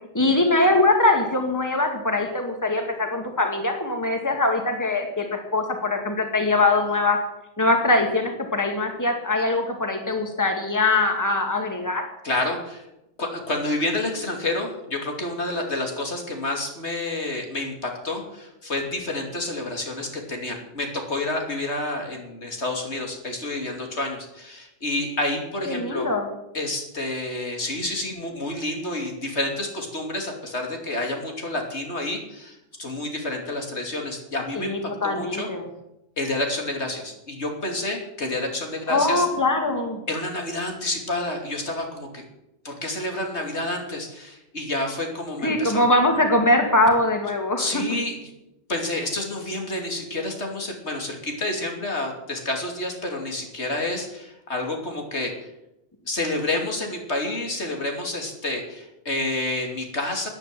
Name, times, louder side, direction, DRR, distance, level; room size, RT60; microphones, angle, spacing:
voice 1, 0.0-7.2 7.6-12.0 25.7-26.3 34.5-35.7 38.9-40.0 45.4-47.8, left 2 dB, 15° left, 4 dB, 2.2 m, -22 dB
voice 2, 12.2-12.8 13.2-26.1 26.5-35.5 36.2-39.3 40.1-42.2 42.6-45.8 47.6-48.1 48.7-55.3 56.1-60.3, left 2 dB, 70° left, 2 dB, 3.2 m, -29 dB
13.5 x 10.0 x 9.2 m, 0.88 s
omnidirectional pair, 1.2 m